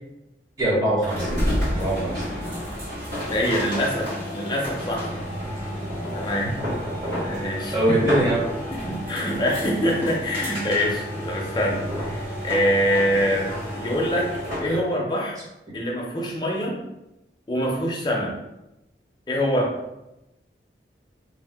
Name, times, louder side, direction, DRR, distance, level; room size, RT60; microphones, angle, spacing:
voice 1, 0.6-1.3 1.8-2.2 7.7-8.4 14.6-14.8, right 1 dB, 20° right, -6 dB, 0.8 m, -22 dB
sound 1, 1.0-14.7, equal, 50° right, 1.3 m, -30 dB
voice 2, 3.3-5.1 6.1-6.5 7.2-8.2 8.7-13.5 13.8-14.3 14.6-15.4 15.7-16.8 17.5-18.3 19.3-19.7, equal, 25° left, -2 dB, 0.5 m, -25 dB
2.7 x 2.0 x 3.3 m, 0.93 s
head